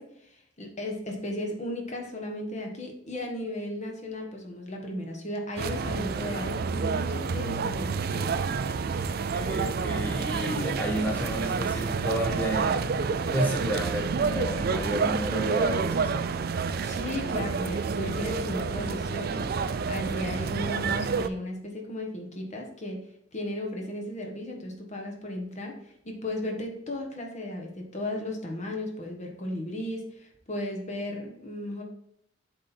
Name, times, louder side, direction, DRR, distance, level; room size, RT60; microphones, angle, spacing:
voice 1, 0.0-8.3 16.8-23.0 23.3-25.8 26.0-31.8, left 1 dB, 40° left, 1 dB, 1.3 m, -35 dB
sound 1, 5.6-21.3, right 5 dB, 50° right, 0.4 m, -29 dB
voice 2, 9.0-12.8 13.3-16.3, right 1 dB, 10° left, -1 dB, 0.8 m, -31 dB
7.5 x 4.1 x 4.3 m, 0.74 s
head